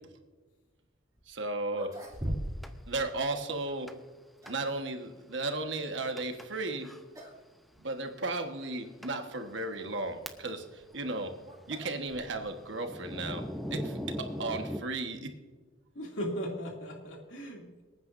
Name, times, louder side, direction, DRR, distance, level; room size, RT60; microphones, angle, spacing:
sound 1, 1.2-1.3 1.7-2.8 3.0-3.2 4.0-4.8 6.6-6.8 7.1-7.4 7.7-7.8 8.6-8.7 10.5-12.6, equal, 15° right, 2.6 m, -40 dB
voice 1, 1.3-1.9 2.9-3.9 4.5-6.9 7.8-11.3 11.7-14.0 14.4-15.3, right 2 dB, 65° right, 5 dB, 1.4 m, -35 dB
Thunder, 2.6-2.7 3.9-4.2 4.5-4.6 5.2-5.3 6.2-6.5 6.8-7.0 7.9-8.0 8.6-8.7 9.0-9.1 9.7-10.7 11.0-14.8, equal, ahead, 0.6 m, -40 dB
voice 2, 15.9-17.8, equal, 70° left, 0 dB, 2.7 m, -37 dB
24.5 x 9.4 x 2.6 m, 1.3 s
head